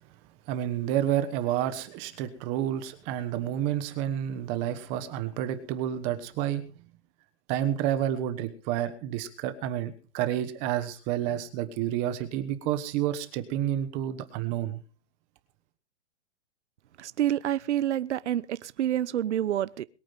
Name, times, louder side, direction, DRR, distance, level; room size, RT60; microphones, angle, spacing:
voice 1, 0.5-6.6 7.5-14.8, right 11 dB, 20° right, 1.2 m, -30 dB
voice 2, 17.0-19.8, right 11 dB, 80° right, 0.9 m, -28 dB
22.0 x 9.0 x 5.6 m
hypercardioid pair, 175°, 34 cm